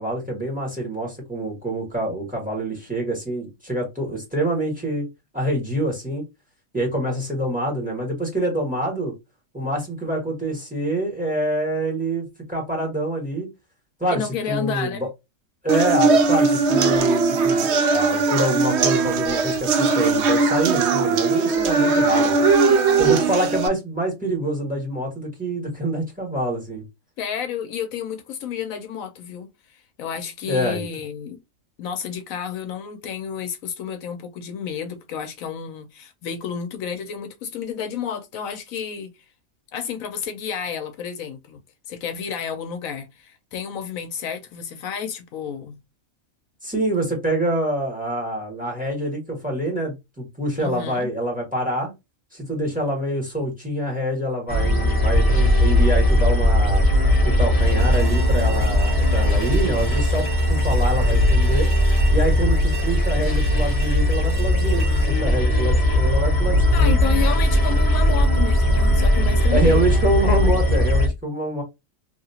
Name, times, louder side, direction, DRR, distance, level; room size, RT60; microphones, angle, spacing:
voice 1, 0.0-5.0 5.3-6.2 6.7-9.1 9.5-13.5 14.0-15.1 15.6-22.5 23.0-26.8 30.5-30.8 46.6-51.9 52.3-56.9 57.2-61.7 62.1-66.9 69.5-71.6, right 1 dB, 5° right, 1.5 m, -26 dB
voice 2, 14.1-15.1 27.2-31.4 31.8-39.1 39.7-41.6 41.9-45.8 50.6-51.1 66.7-69.8, left 7 dB, 75° left, 1.0 m, -31 dB
sound 1, 15.7-23.7, right 4 dB, 65° right, 0.7 m, -19 dB
sound 2, 54.5-71.1, left 1 dB, 30° left, 0.4 m, -18 dB
sound 3, 57.6-66.6, right 4 dB, 45° right, 1.2 m, -38 dB
2.9 x 2.8 x 2.7 m
omnidirectional pair, 1.5 m